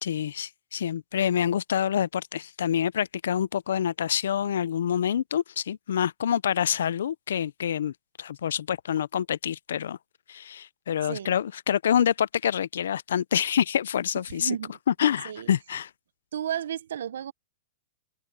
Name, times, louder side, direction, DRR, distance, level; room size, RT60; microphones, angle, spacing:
voice 1, 0.0-10.0 10.3-14.6 14.9-15.9, left 9 dB, 70° left, 0.4 m, -27 dB
voice 2, 11.0-11.3 14.3-14.8 15.2-15.5 16.3-17.3, right 9 dB, 65° right, 0.7 m, -33 dB
hypercardioid pair, 165°, 0 cm